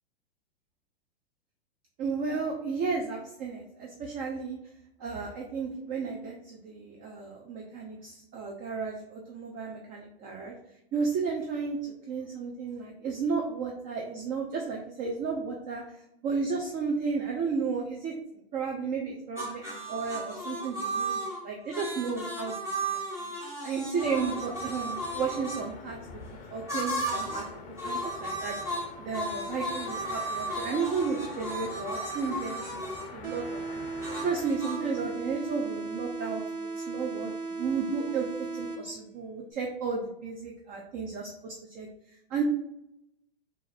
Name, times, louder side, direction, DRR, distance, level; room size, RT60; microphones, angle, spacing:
voice 1, 2.0-4.6 5.0-10.5 10.9-15.8 16.2-18.1 18.5-23.3 23.6-26.0 26.5-27.4 27.8-28.6 29.0-33.4 33.7-33.8 34.2-42.4, right 5 dB, 30° right, 0 dB, 0.6 m, -33 dB
sound 1, 19.4-25.6 26.7-27.5 27.8-33.1 34.0-34.8, right 1 dB, 10° right, 0.9 m, -35 dB
sound 2, 24.0-34.5, left 4 dB, 25° left, 0.6 m, -45 dB
sound 3, 33.2-39.2, right 3 dB, 60° right, 1.0 m, -36 dB
3.7 x 2.6 x 4.1 m, 0.82 s
hypercardioid pair, 115°, 29 cm